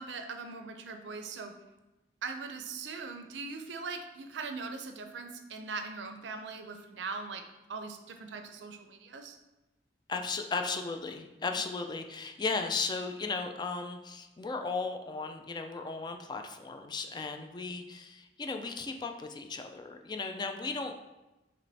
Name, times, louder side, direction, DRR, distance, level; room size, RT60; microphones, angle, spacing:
voice 1, 0.0-1.5 2.2-7.4 7.7-9.4, right 4 dB, 85° right, 6 dB, 0.5 m, -40 dB
voice 2, 10.1-20.9, left 4 dB, 25° left, 5 dB, 0.3 m, -36 dB
5.0 x 3.0 x 3.3 m, 1.0 s
head